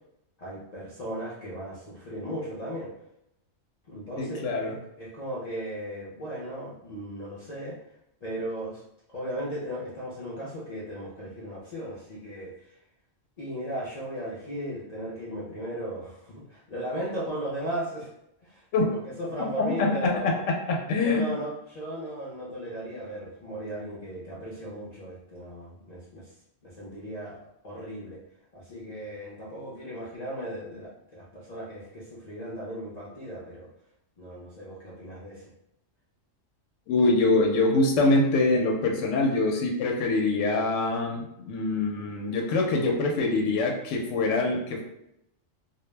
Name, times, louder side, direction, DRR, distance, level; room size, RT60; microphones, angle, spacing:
voice 1, 0.4-2.9 3.9-7.8 8.2-8.8 9.1-12.8 13.4-18.1 18.4-20.4 21.0-26.3 26.6-27.4 27.6-28.2 28.5-33.7 34.2-35.5, right 1 dB, 50° left, -8 dB, 0.5 m, -36 dB
voice 2, 4.2-4.7 18.7-18.9 19.6-20.3 20.7-21.2 36.9-44.8, left 3 dB, 70° left, 0 dB, 0.9 m, -24 dB
2.3 x 2.0 x 3.2 m, 0.80 s
omnidirectional pair, 1.3 m